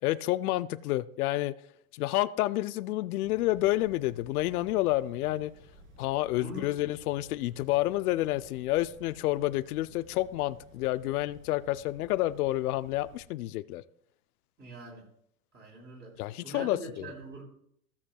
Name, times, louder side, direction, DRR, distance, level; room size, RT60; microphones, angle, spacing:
voice 1, 0.0-1.5 1.9-5.5 6.0-13.8 16.2-17.1, left 16 dB, 80° left, 0.5 m, -29 dB
sound 1, 3.2-13.2, right 1 dB, 40° right, 3.1 m, -55 dB
voice 2, 6.3-6.7 14.6-15.1 15.5-17.4, right 2 dB, 25° right, 3.2 m, -43 dB
15.5 x 7.2 x 2.2 m
supercardioid pair, 135°, 44 cm